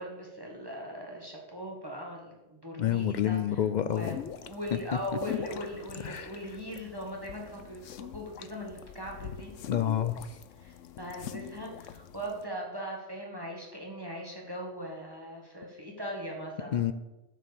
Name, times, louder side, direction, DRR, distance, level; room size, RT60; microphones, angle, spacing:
voice 1, 0.0-4.2 4.5-9.6 10.6-16.9, equal, 20° right, -1 dB, 1.7 m, -40 dB
voice 2, 2.8-4.2 6.0-6.3 9.7-10.4 16.7-16.9, left 10 dB, 70° left, 12 dB, 0.4 m, -28 dB
sound 1, 3.9-12.4, left 9 dB, 85° left, 1.0 m, -44 dB
12.5 x 4.9 x 7.0 m, 1.0 s
omnidirectional pair, 1.3 m